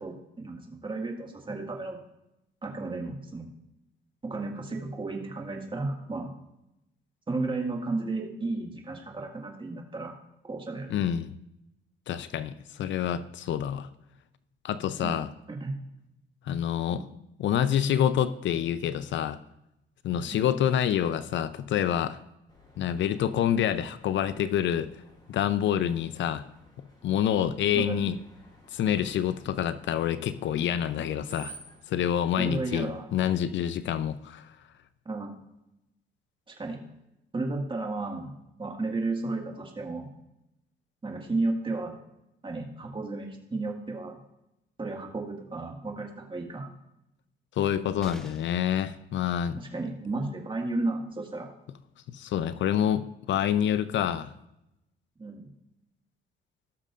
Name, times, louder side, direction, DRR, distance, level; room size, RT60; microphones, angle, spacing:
voice 1, 0.0-2.0 2.6-3.5 4.2-6.3 7.3-10.1 10.4-10.9 15.0-15.2 15.5-15.7 16.9-17.1 20.3-20.5 27.7-28.1 32.4-33.1 35.1-35.4 36.5-36.8 37.3-38.3 38.6-40.1 41.0-42.0 42.4-44.2 44.8-46.7 49.6-51.5 55.2-55.5, right 2 dB, 25° right, 1 dB, 1.8 m, -33 dB
voice 2, 10.9-11.4 12.1-13.9 14.6-15.3 16.5-17.0 17.4-19.4 20.0-22.2 22.8-24.9 25.3-26.4 27.0-28.2 28.7-31.6 31.9-34.5 47.6-49.6 52.1-54.3, left 10 dB, 70° left, 13 dB, 0.5 m, -27 dB
Screech, 22.5-31.8, right 2 dB, 20° left, 3.6 m, -54 dB
sound 1, 48.0-48.7 50.7-50.8 51.1-51.2, equal, 5° left, 0.5 m, -48 dB
17.5 x 6.6 x 2.5 m, 0.88 s
cardioid pair, 90°, 20 cm